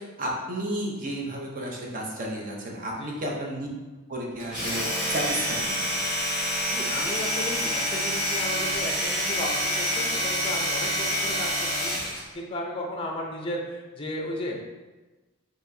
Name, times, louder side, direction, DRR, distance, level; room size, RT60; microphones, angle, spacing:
voice 1, 0.0-3.7 4.1-4.8 5.1-6.0, right 1 dB, 40° right, -1 dB, 0.7 m, -32 dB
Domestic sounds home sounds, 4.4-12.2, equal, 5° right, 1.4 m, -27 dB
voice 2, 6.7-11.9 12.3-14.5, left 1 dB, 25° left, 0 dB, 0.5 m, -34 dB
4.3 x 3.0 x 2.6 m, 1.2 s
head